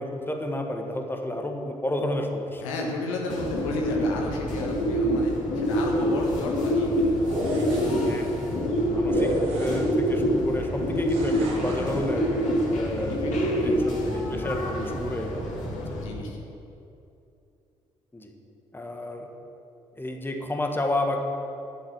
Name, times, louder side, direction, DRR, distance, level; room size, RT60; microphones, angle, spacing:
voice 1, 0.0-2.7 4.4-4.6 8.0-12.3 12.7-13.3 13.6-15.5 15.9-16.0 18.1-18.3 18.7-19.3 19.9-21.2, left 1 dB, 10° left, 3 dB, 1.6 m, -31 dB
voice 2, 2.6-7.2 13.1-14.3 14.8-15.0 15.9-16.5, left 2 dB, 75° left, 0 dB, 1.3 m, -33 dB
Bird, 3.3-16.0, equal, 50° left, 3.1 m, -26 dB
sound 1, 7.1-8.1 9.1-10.2 11.1-12.0, right 1 dB, 65° right, 2.4 m, -31 dB
10.5 x 8.9 x 6.3 m, 2.7 s
figure-of-eight pair, 40°, 17 cm